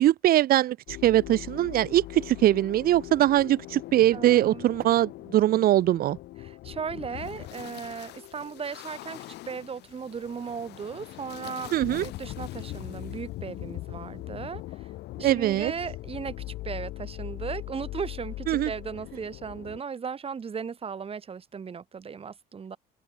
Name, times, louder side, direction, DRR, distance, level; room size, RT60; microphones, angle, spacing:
voice 1, 0.0-6.2 11.7-12.0 15.2-15.7 18.5-18.7, right 13 dB, 60° right, 0.7 m, -22 dB
sound 1, 0.9-19.8, left 17 dB, 80° left, 3.8 m, -40 dB
voice 2, 4.1-4.7 6.4-11.7 12.0-14.9 15.2-16.4 16.6-22.8, right 6 dB, 35° right, 3.5 m, -37 dB
open air
cardioid pair, 110°, 17 cm